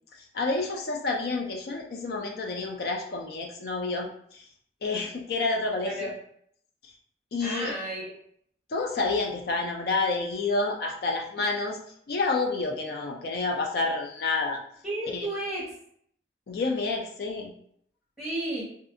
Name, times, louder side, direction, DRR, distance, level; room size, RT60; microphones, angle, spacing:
voice 1, 0.3-4.5 4.8-6.1 6.8-6.9 7.3-7.7 8.7-11.8 12.1-14.6 15.1-15.3 16.5-17.5, left 3 dB, 60° left, 1 dB, 0.4 m, -29 dB
voice 2, 7.4-8.1 14.8-15.7 18.2-18.6, right 1 dB, 5° right, -7 dB, 0.9 m, -32 dB
2.6 x 2.4 x 2.5 m, 0.65 s
head